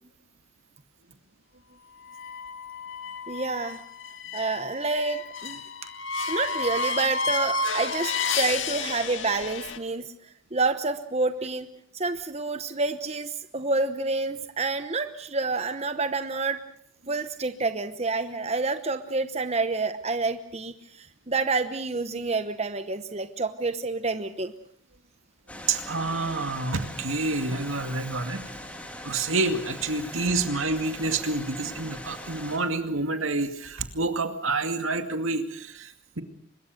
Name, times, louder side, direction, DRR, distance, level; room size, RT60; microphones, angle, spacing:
sound 1, 2.1-9.8, left 4 dB, 65° left, 2.1 m, -31 dB
voice 1, 3.3-3.8 4.3-5.6 6.3-10.1 10.5-11.7 11.9-16.6 17.1-24.5, right 3 dB, 30° right, 10 dB, 1.0 m, -28 dB
sound 2, 25.5-32.6, left 1 dB, 5° left, 3.4 m, -41 dB
voice 2, 25.7-28.4 29.0-36.2, right 3 dB, 80° right, 7 dB, 2.3 m, -28 dB
24.5 x 21.5 x 6.5 m, 0.64 s
head